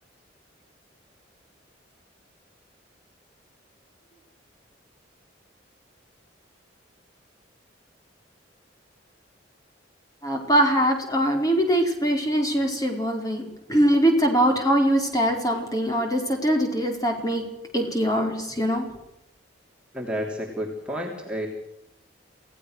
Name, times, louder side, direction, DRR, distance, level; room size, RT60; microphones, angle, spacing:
voice 1, 10.2-17.4 17.7-18.9, equal, 20° left, 2 dB, 4.8 m, -22 dB
voice 2, 19.9-21.5, equal, 5° right, -1 dB, 3.3 m, -30 dB
28.0 x 17.0 x 6.6 m, 0.83 s
head